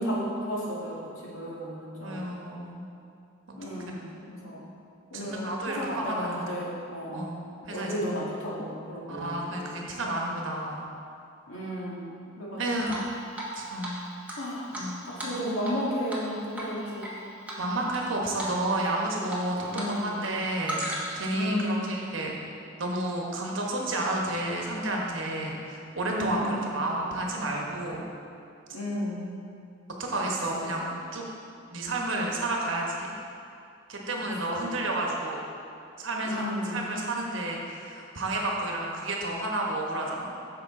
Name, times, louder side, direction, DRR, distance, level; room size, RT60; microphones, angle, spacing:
voice 1, 0.0-2.3 3.6-4.7 5.1-7.3 7.6-10.0 11.5-13.0 14.4-14.8 15.1-17.2 19.7-20.4 21.3-22.1 26.1-26.8 28.7-29.4 30.1-30.3 30.6-30.9 34.1-34.9 36.2-37.0, equal, 75° left, -5 dB, 1.8 m, -34 dB
voice 2, 2.0-2.8 3.5-3.7 5.1-6.4 7.1-8.1 9.1-10.9 12.6-13.2 13.5-14.0 14.7-14.9 17.6-22.3 22.8-28.0 30.0-31.3 31.7-33.1 33.9-35.4 36.0-40.3, right 1 dB, 65° right, -1 dB, 1.2 m, -31 dB
Drip, 12.9-13.5 13.8-13.9 14.3-15.8 16.1-16.3 16.6-17.1 17.5-18.0 18.4-18.6 18.8-19.9 20.2-21.3, right 1 dB, 5° right, 1.2 m, -35 dB
8.9 x 6.5 x 3.7 m, 2.5 s
head